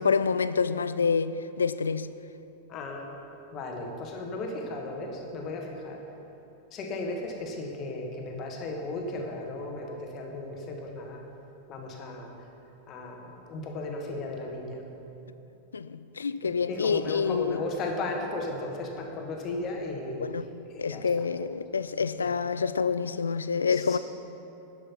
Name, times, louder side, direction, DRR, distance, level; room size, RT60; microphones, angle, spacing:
voice 1, 0.0-2.1 15.7-17.6 20.2-20.5 20.8-24.0, left 5 dB, 75° left, 0.3 m, -27 dB
voice 2, 2.7-3.0 3.5-6.0 6.7-11.2 11.7-12.3 12.9-14.8 16.4-20.2 20.7-21.3 22.2-22.3 23.6-24.0, left 2 dB, 35° left, 1.5 m, -35 dB
10.0 x 6.6 x 5.8 m
figure-of-eight pair, 90°, 0 cm